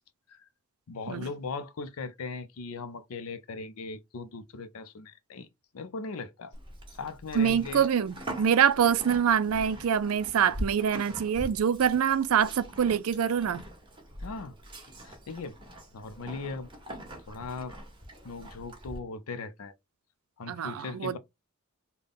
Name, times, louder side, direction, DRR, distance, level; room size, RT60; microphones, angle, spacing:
voice 1, 0.9-5.5 5.7-6.5 6.9-7.8 14.2-14.6 15.0-15.6 15.9-16.7 17.3-17.7 18.2-19.7 20.4-21.2, left 4 dB, 90° left, 0.5 m, -39 dB
Livestock farm animals working animals, 6.5-19.0, right 1 dB, 25° right, 1.3 m, -43 dB
voice 2, 7.3-13.6 20.5-21.2, right 8 dB, 90° right, 0.4 m, -25 dB
3.5 x 2.2 x 3.7 m
head